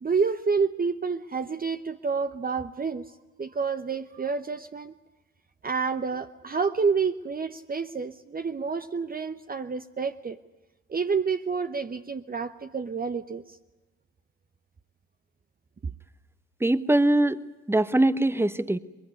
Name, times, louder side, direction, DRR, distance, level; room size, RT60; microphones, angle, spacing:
voice 1, 0.0-4.9 5.6-10.4 10.9-13.6, right 5 dB, 25° right, 9 dB, 1.0 m, -29 dB
voice 2, 16.6-17.4 17.7-18.8, right 1 dB, 5° right, 14 dB, 1.3 m, -22 dB
22.5 x 22.5 x 9.7 m, 1.1 s
hypercardioid pair, 50°, 34 cm